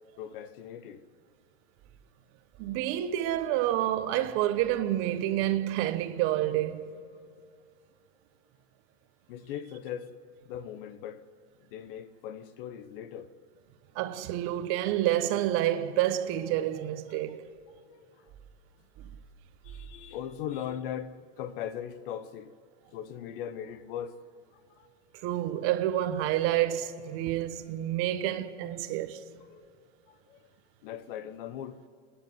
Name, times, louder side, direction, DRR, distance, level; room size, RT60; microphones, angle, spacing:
voice 1, 0.2-1.0 5.2-5.3 9.3-10.1 10.4-11.2 11.7-13.3 17.9-18.2 19.6-22.5 22.9-24.2 24.5-24.9 29.5-30.4 30.8-31.8, left 9 dB, 55° left, 1.1 m, -39 dB
voice 2, 2.6-6.9 13.9-17.4 25.2-29.2, right 13 dB, 45° right, 1.0 m, -28 dB
27.0 x 10.0 x 9.5 m
supercardioid pair, 135°, 32 cm